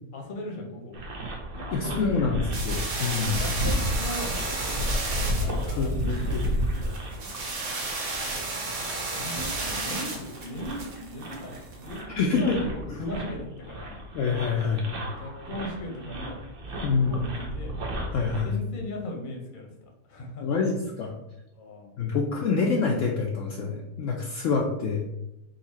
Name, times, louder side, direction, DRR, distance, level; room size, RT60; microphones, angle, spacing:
voice 1, 0.1-1.0 1.5-2.5 3.2-7.4 8.6-14.0 15.2-16.4 16.7-17.7 18.4-19.7 20.1-20.6 21.5-22.0, left 1 dB, 40° left, 0 dB, 0.9 m, -38 dB
sound 1, 0.9-18.4, equal, 45° right, 0.8 m, -33 dB
voice 2, 1.7-3.4 5.8-6.5 12.1-12.6 14.1-14.9 16.8-17.2 18.1-18.6 20.4-21.1 22.0-25.0, left 4 dB, 65° left, 0 dB, 0.9 m, -26 dB
sound 2, 2.5-11.9, right 3 dB, 70° right, 1.4 m, -33 dB
3.9 x 2.8 x 4.1 m, 0.91 s
omnidirectional pair, 1.6 m